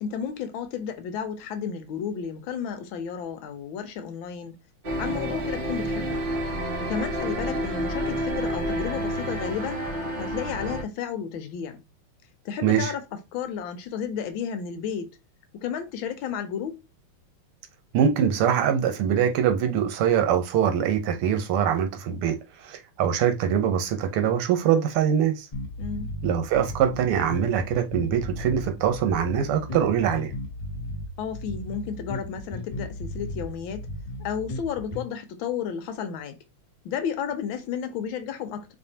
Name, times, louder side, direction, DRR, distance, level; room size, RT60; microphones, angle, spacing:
voice 1, 0.0-4.5 5.0-6.2 6.8-9.8 10.2-11.8 12.4-13.0 13.3-15.2 15.6-16.8 25.8-26.1 31.2-33.9 34.2-36.4 36.8-38.7, left 7 dB, 75° left, 1.3 m, -32 dB
sound 1, 4.8-10.8, right 1 dB, 65° right, 0.5 m, -29 dB
voice 2, 17.9-22.4 22.6-25.5 26.2-30.3, right 8 dB, 85° right, 1.6 m, -23 dB
sound 2, 25.5-35.1, left 1 dB, 30° left, 0.7 m, -36 dB
4.2 x 3.3 x 2.7 m
omnidirectional pair, 2.4 m